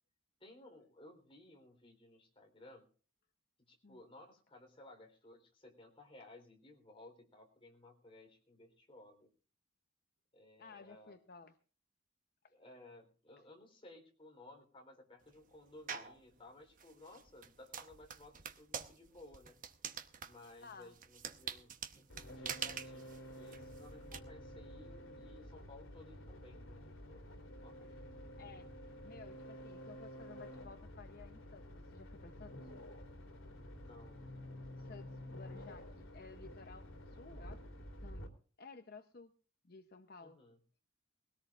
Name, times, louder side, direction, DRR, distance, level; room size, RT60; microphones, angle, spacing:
voice 1, 0.4-2.9 3.7-9.3 10.3-11.2 12.5-19.6 20.2-27.3 27.6-28.0 33.7-34.9 40.2-40.6, left 2 dB, 25° left, 1 dB, 3.8 m, -58 dB
voice 2, 10.6-11.5 12.4-12.5 20.6-20.9 27.9-28.0 28.4-28.7 29.0-32.7 34.8-37.6 38.0-39.3 39.6-40.4, left 4 dB, 50° left, 8 dB, 0.8 m, -55 dB
sound 1, 15.9-16.2 16.8-24.2, right 7 dB, 40° right, 1.0 m, -45 dB
sound 2, 22.1-38.3, equal, 90° left, 3.2 m, -50 dB
20.0 x 17.5 x 2.5 m, 0.39 s
head